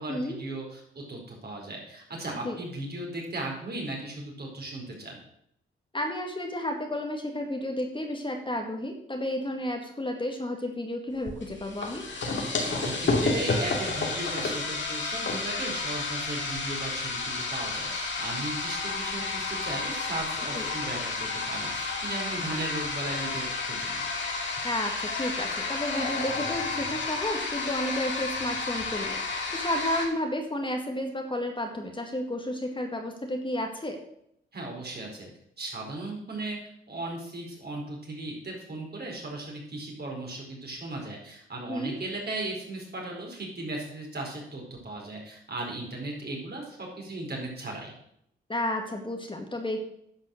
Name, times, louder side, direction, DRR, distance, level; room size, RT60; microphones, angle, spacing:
voice 1, 0.0-5.2 12.5-24.0 34.5-35.3 35.6-36.6 36.9-47.9, right 2 dB, 50° right, -1 dB, 4.7 m, -37 dB
voice 2, 5.9-12.0 20.5-20.7 24.6-34.0 41.7-42.0 48.5-49.8, left 1 dB, 25° left, 3 dB, 2.1 m, -32 dB
sound 1, 11.3-30.1, left 3 dB, 60° left, 2.6 m, -31 dB
10.5 x 6.0 x 6.5 m, 0.72 s
supercardioid pair, 50°, 21 cm